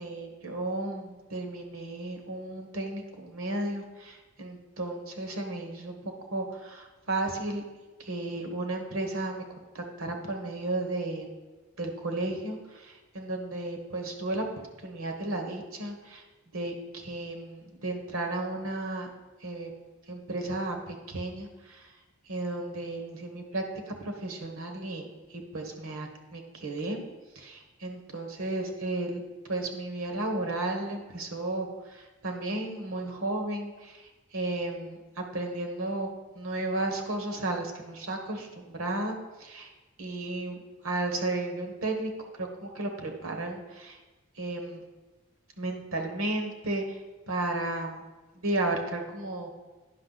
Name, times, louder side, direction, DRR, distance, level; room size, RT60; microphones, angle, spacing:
voice 1, 0.0-7.6 8.0-11.3 11.8-14.4 14.8-16.2 16.5-19.1 19.4-19.7 20.1-21.9 22.3-27.0 27.3-29.2 29.5-36.1 36.3-39.7 40.0-42.1 42.4-44.0 44.4-44.8 45.6-47.0 47.3-48.0 48.3-49.5, right 2 dB, 80° right, 3 dB, 1.2 m, -34 dB
9.8 x 5.8 x 3.9 m, 1.2 s
head